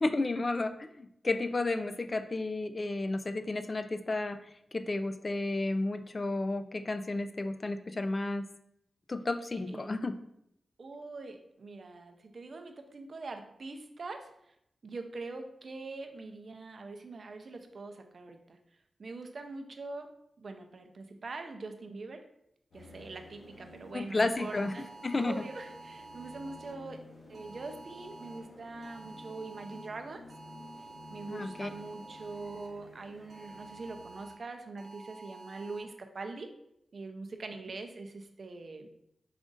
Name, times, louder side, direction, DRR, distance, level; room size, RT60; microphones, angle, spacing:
voice 1, 0.0-4.4 4.7-8.4 9.1-10.2 23.9-24.7 25.0-25.4 31.3-31.7, left 2 dB, 35° left, 9 dB, 0.3 m, -32 dB
voice 2, 10.8-14.5 14.8-18.6 19.0-22.3 22.7-24.9 25.2-27.0 27.3-30.2 31.1-36.5 36.9-38.9, right 3 dB, 60° right, 6 dB, 0.5 m, -43 dB
sound 1, 22.7-34.2, left 2 dB, 75° left, 1.7 m, -52 dB
sound 2, 24.3-26.7 27.3-28.4 28.8-29.9 30.3-32.7 33.3-34.3 34.8-35.8, right 3 dB, 80° right, 1.1 m, -50 dB
5.0 x 2.4 x 3.8 m, 0.77 s
wide cardioid pair, 90°, 0 cm